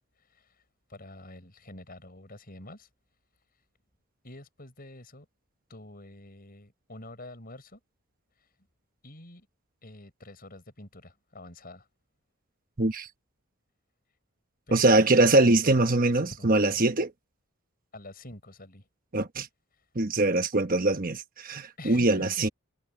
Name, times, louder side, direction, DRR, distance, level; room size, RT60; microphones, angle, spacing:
voice 1, 0.2-0.6 0.9-2.9 4.2-5.3 5.7-7.8 9.0-9.5 9.8-11.9 14.7-15.2 15.4-16.9 17.9-18.9 21.8-22.5, left 1 dB, 45° left, 6.0 m, -47 dB
voice 2, 12.8-13.1 14.7-17.1 19.1-19.5 19.9-22.5, right 2 dB, 40° right, 1.1 m, -23 dB
head